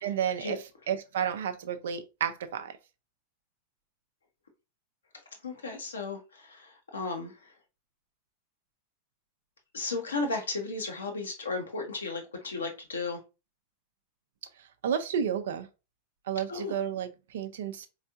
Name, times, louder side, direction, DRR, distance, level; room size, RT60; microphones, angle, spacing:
voice 1, 0.0-2.8 14.8-15.7 16.3-17.9, right 8 dB, 60° right, 0.5 m, -31 dB
voice 2, 5.4-7.3 9.7-13.2 16.5-16.7, left 3 dB, 70° left, 1.0 m, -34 dB
4.3 x 3.1 x 2.4 m
figure-of-eight pair, 90°, 0 cm